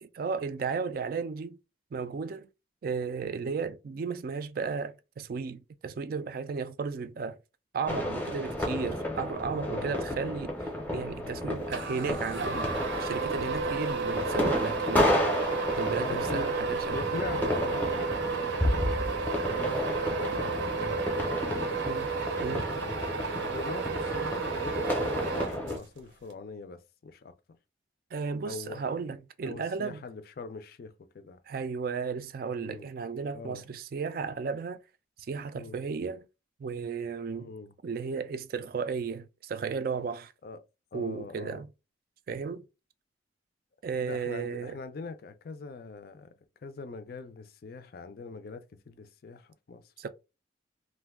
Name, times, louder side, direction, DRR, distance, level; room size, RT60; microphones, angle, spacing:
voice 1, 0.0-1.6 1.9-2.5 2.8-7.4 7.7-10.5 10.9-12.7 13.0-15.1 15.8-17.0 21.9-22.1 22.4-22.7 28.1-30.0 31.5-34.8 35.3-36.3 36.6-37.5 37.8-40.3 40.9-41.7 42.3-42.6 43.8-44.8 50.0-50.1, right 5 dB, 50° right, 0.3 m, -34 dB
voice 2, 7.9-8.4 9.6-10.3 15.8-18.8 19.3-21.8 22.4-22.9 23.3-27.3 28.4-28.8 29.4-31.4 32.6-32.9 33.3-33.7 35.5-35.8 37.3-37.7 40.4-40.6 40.9-41.6 44.0-46.3 46.6-49.9, left 4 dB, 55° left, 0.4 m, -42 dB
sound 1, 7.9-25.8, left 1 dB, 10° left, 0.6 m, -32 dB
sound 2, 11.7-26.0, right 5 dB, 80° right, 0.7 m, -32 dB
2.5 x 2.2 x 3.4 m
head